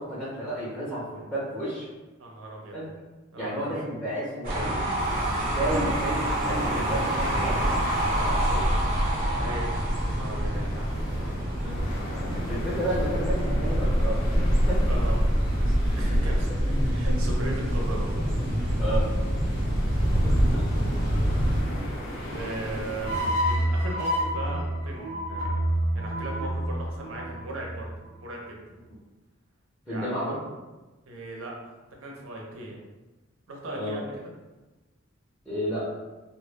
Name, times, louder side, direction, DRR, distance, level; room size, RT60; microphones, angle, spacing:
voice 1, 0.0-1.9 2.7-2.8 3.4-4.8 5.5-8.7 11.6-11.9 12.3-14.8 16.0-16.2 18.8-19.1 20.2-20.7 29.9-30.4 33.7-34.0 35.5-35.9, right 1 dB, 5° right, -10 dB, 0.5 m, -32 dB
voice 2, 2.2-2.8 3.3-3.6 5.7-6.0 9.4-10.9 14.9-15.3 15.8-18.2 21.6-23.2 23.5-25.6 25.9-27.9 28.2-28.6 29.9-30.4 31.1-32.8 33.5-34.1, right 1 dB, 85° right, -1 dB, 0.6 m, -38 dB
sound 1, 4.4-21.6, equal, 45° right, 0.7 m, -26 dB
sound 2, 5.0-23.3, equal, 90° left, 0.8 m, -36 dB
sound 3, 23.0-28.2, equal, 60° left, 0.8 m, -28 dB
2.1 x 2.0 x 3.0 m, 1.1 s
head